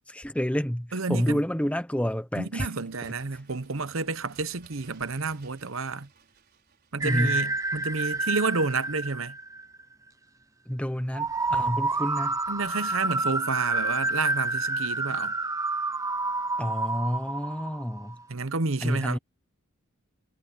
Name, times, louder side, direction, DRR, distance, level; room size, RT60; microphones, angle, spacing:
voice 1, 0.1-2.7 7.0-7.4 10.7-12.4 16.6-18.2 18.8-19.2, equal, 5° left, 1.0 m, -29 dB
voice 2, 0.9-1.4 2.4-6.1 6.9-9.4 12.5-15.3 18.3-19.2, right 3 dB, 65° right, 1.0 m, -30 dB
Bird, 2.5-8.0 8.3-8.4, right 4 dB, 45° right, 6.1 m, -58 dB
sound 1, 7.0-9.8 11.1-18.2, right 3 dB, 15° right, 0.6 m, -29 dB
head